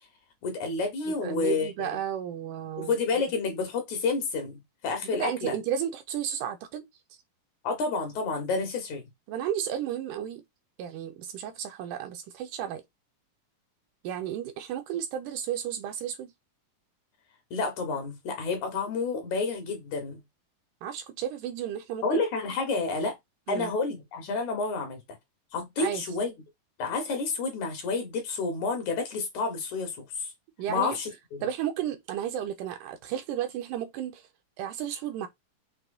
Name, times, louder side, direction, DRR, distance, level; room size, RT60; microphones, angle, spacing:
voice 1, 0.4-1.9 2.8-5.6 7.6-9.1 17.5-20.2 22.0-23.2 23.5-25.0 25.5-26.3 26.8-30.3 30.7-31.4, left 4 dB, 65° left, 2.3 m, -30 dB
voice 2, 1.2-2.9 5.2-6.9 9.3-10.4 10.8-12.8 14.0-16.3 20.8-22.0 23.5-23.7 25.8-26.0 30.6-31.0 31.4-34.2 34.6-35.3, right 10 dB, 80° right, 1.9 m, -33 dB
6.0 x 3.0 x 2.4 m
omnidirectional pair, 3.9 m